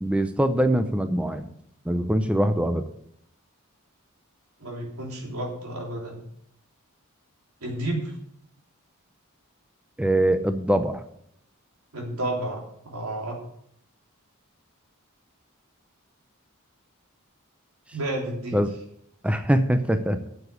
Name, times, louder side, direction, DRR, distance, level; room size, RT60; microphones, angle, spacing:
voice 1, 0.0-1.5 1.9-2.8 10.0-11.0 18.5-18.7 19.2-20.2, right 1 dB, 5° right, 9 dB, 0.6 m, -23 dB
voice 2, 4.6-6.2 7.6-8.1 11.9-13.4 17.9-18.6, right 1 dB, 85° right, 0 dB, 3.4 m, -31 dB
8.1 x 7.1 x 8.5 m, 0.72 s
head